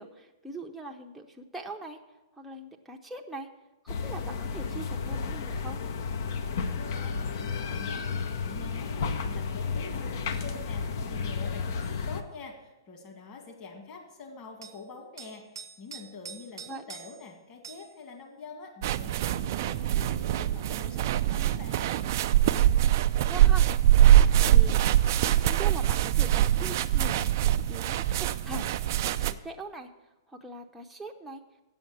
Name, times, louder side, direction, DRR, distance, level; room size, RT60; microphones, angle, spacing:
voice 1, 0.0-2.0 2.3-3.5 3.8-5.8 16.6-16.9 23.3-23.7 24.5-24.8 25.4-27.2 27.7-28.8 29.0-29.9 30.3-31.4, right 2 dB, 5° right, 1 dB, 0.7 m, -41 dB
sound 1, 3.9-12.2, left 5 dB, 55° left, 0.8 m, -32 dB
voice 2, 6.5-8.0 8.3-21.9, left 4 dB, 35° left, 2 dB, 2.0 m, -46 dB
sound 2, 11.8-12.0 14.6-14.8 15.2-17.3 17.6-17.9 20.4-20.5, right 6 dB, 80° right, 0.9 m, -45 dB
sound 3, 18.8-29.3, right 12 dB, 50° right, 0.4 m, -23 dB
8.2 x 7.1 x 7.0 m, 1.1 s
hypercardioid pair, 125°, 2 cm